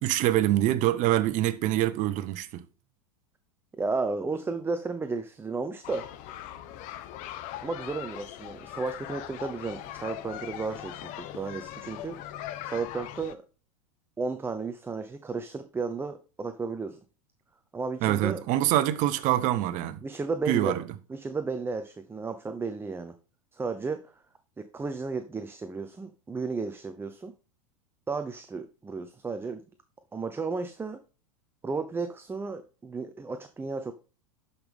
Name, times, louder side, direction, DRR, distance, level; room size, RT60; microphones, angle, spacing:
voice 1, 0.0-2.6 18.0-20.0 20.5-20.8, right 14 dB, 45° right, 1.0 m, -25 dB
voice 2, 3.8-6.1 7.6-12.2 12.6-13.4 14.2-17.0 17.7-18.4 20.0-20.8 21.1-23.1 23.5-24.1 24.6-27.3 28.1-29.6 30.1-31.0 31.6-33.9, right 4 dB, 15° right, 0.8 m, -33 dB
sound 1, 5.8-13.3, left 12 dB, 50° left, 1.0 m, -40 dB
11.5 x 5.6 x 3.5 m
hypercardioid pair, 100°, 17 cm